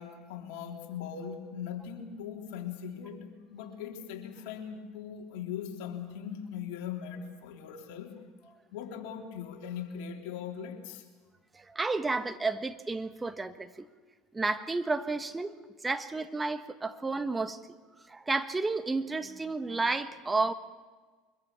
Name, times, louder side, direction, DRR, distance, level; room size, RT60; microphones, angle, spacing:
voice 1, 0.0-8.2 8.7-11.0, left 8 dB, 65° left, 3 dB, 3.4 m, -40 dB
voice 2, 11.5-13.8 14.3-15.5 15.8-17.6 18.1-20.5, right 3 dB, 15° right, 10 dB, 1.5 m, -31 dB
24.5 x 22.5 x 7.1 m, 1.4 s
hypercardioid pair, 80°, 0 cm